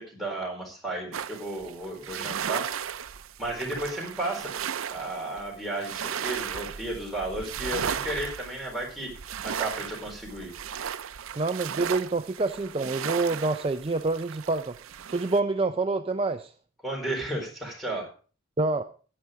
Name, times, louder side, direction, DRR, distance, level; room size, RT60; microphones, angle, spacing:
voice 1, 0.0-2.7 3.4-4.6 4.9-9.1 9.4-10.5 16.8-18.1, right 1 dB, ahead, 0 dB, 4.0 m, -33 dB
sound 1, 1.1-15.4, right 8 dB, 80° right, 0.6 m, -35 dB
voice 2, 11.4-14.8 15.1-16.5 18.6-18.8, right 3 dB, 25° right, 7 dB, 0.5 m, -27 dB
10.0 x 9.6 x 5.0 m, 0.39 s
head